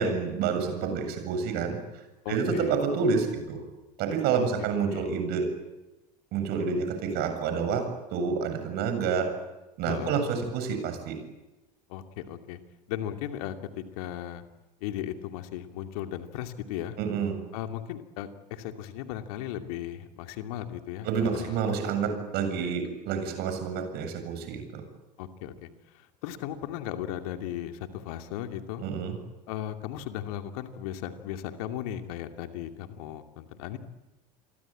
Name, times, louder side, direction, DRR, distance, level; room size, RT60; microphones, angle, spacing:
voice 1, 0.0-1.8 2.3-3.6 4.0-5.5 6.3-7.8 8.1-9.3 9.8-11.2 17.0-17.3 21.0-24.8 28.8-29.2, right 6 dB, 50° right, 7 dB, 7.5 m, -28 dB
voice 2, 2.2-2.8 4.3-4.4 4.9-5.1 9.9-10.3 11.9-12.6 12.9-14.4 14.8-17.0 17.5-21.6 22.6-22.8 25.2-28.8 29.5-33.8, left 11 dB, 60° left, 6 dB, 2.6 m, -36 dB
29.0 x 23.5 x 8.8 m, 1.0 s
figure-of-eight pair, 75°, 21 cm